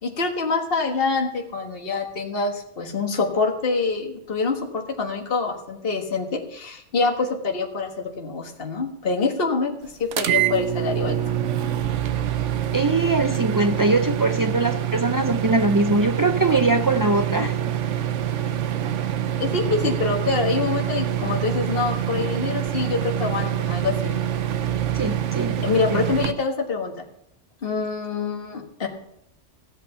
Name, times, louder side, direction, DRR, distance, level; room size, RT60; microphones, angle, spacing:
voice 1, 0.0-9.7 10.0-11.4 19.4-24.1 25.6-27.1 27.6-28.9, left 4 dB, 50° left, 2 dB, 1.8 m, -25 dB
sound 1, 10.1-26.3, right 11 dB, 80° right, 1.0 m, -25 dB
voice 2, 12.7-17.5 24.9-25.5, right 2 dB, 35° right, 7 dB, 0.3 m, -21 dB
16.0 x 8.1 x 5.7 m, 0.78 s
omnidirectional pair, 1.2 m